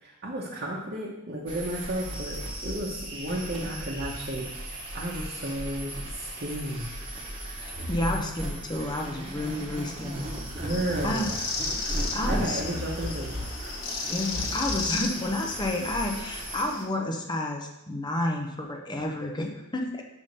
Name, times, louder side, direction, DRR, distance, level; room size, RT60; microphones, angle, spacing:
voice 1, 0.0-4.5 4.9-6.9 10.6-11.4 12.3-13.4, right 1 dB, 45° right, -4 dB, 1.0 m, -33 dB
sound 1, 1.5-16.6, equal, 25° right, 1.3 m, -36 dB
voice 2, 7.9-10.2 11.0-11.3 12.1-12.6 14.1-20.0, left 1 dB, 20° left, 2 dB, 0.7 m, -30 dB
sound 2, 10.7-16.8, left 4 dB, 85° left, 1.2 m, -35 dB
5.5 x 4.9 x 5.3 m, 0.92 s
head